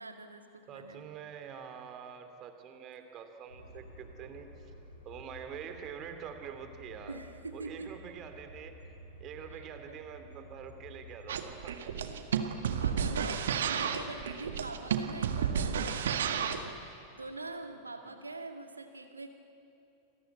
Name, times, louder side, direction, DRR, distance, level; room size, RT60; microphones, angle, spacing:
voice 1, 0.0-1.1 7.1-7.9 9.5-10.0 12.8-19.3, right 3 dB, 80° right, 6 dB, 2.1 m, -44 dB
voice 2, 0.7-4.7 5.0-7.2 7.5-8.8 9.2-11.9 18.1-18.2, right 7 dB, 35° right, 7 dB, 3.0 m, -46 dB
sound 1, 3.5-11.5, left 1 dB, 80° left, 3.2 m, -52 dB
sound 2, 11.3-16.7, right 7 dB, 60° right, 1.7 m, -32 dB
30.0 x 23.0 x 8.3 m, 2.7 s
figure-of-eight pair, 90°, 0 cm